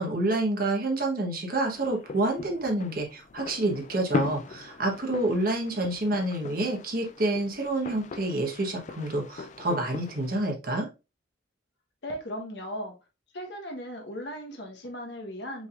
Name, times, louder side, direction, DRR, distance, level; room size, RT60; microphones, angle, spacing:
voice 1, 0.0-10.9, right 2 dB, 50° right, 1.1 m, -28 dB
sound 1, 1.7-10.4, left 4 dB, 40° left, 0.3 m, -39 dB
voice 2, 12.0-13.0 13.3-15.7, equal, 65° left, 1.2 m, -37 dB
5.2 x 3.5 x 2.4 m
head